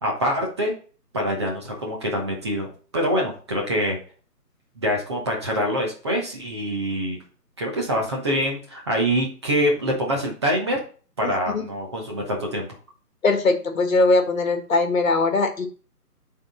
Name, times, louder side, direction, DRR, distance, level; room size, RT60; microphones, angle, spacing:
voice 1, 0.0-0.7 1.1-2.7 2.9-4.0 4.8-7.2 7.6-10.8 11.2-12.7, equal, 15° right, 0 dB, 0.9 m, -25 dB
voice 2, 11.2-11.6 13.2-15.7, left 3 dB, 55° left, 6 dB, 1.6 m, -21 dB
8.7 x 3.8 x 4.1 m, 0.38 s
figure-of-eight pair, 150°, 48 cm